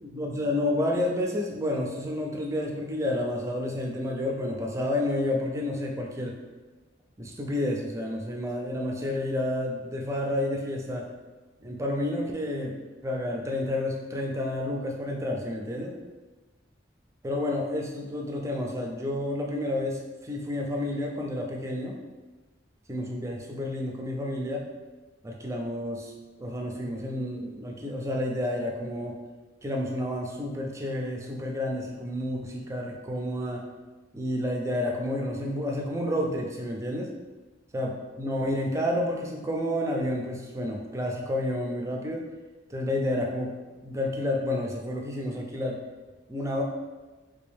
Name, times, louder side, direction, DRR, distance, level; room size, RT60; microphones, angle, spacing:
voice 1, 0.0-6.4 7.2-11.1 11.6-12.8 13.0-16.0 17.2-21.9 22.9-24.6 25.2-26.1 26.4-29.2 29.6-33.6 34.1-37.1 37.7-37.9 38.2-42.2 42.7-43.5 43.8-45.8 46.3-46.6, left 1 dB, 15° right, 0 dB, 0.4 m, -30 dB
3.4 x 2.6 x 3.4 m, 1.2 s
head